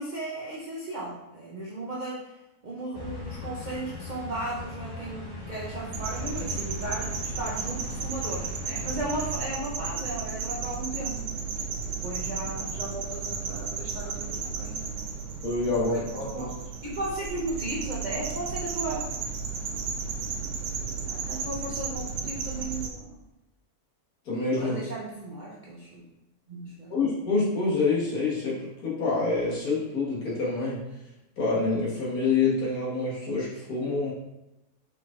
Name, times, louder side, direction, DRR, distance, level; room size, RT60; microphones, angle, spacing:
voice 1, 0.0-2.4 2.6-11.3 11.9-14.9 15.8-16.4 16.8-19.0 21.1-23.2 24.5-26.1 26.5-27.0, right 2 dB, 55° right, -5 dB, 0.5 m, -36 dB
sound 1, 2.9-9.4, left 3 dB, 20° left, 0.6 m, -39 dB
sound 2, 5.9-22.9, right 5 dB, 90° right, 1.2 m, -34 dB
voice 2, 15.4-16.6 24.3-24.8 26.9-30.8 31.4-34.1, left 3 dB, 75° left, -6 dB, 1.8 m, -27 dB
4.5 x 4.0 x 2.4 m, 0.93 s
omnidirectional pair, 1.6 m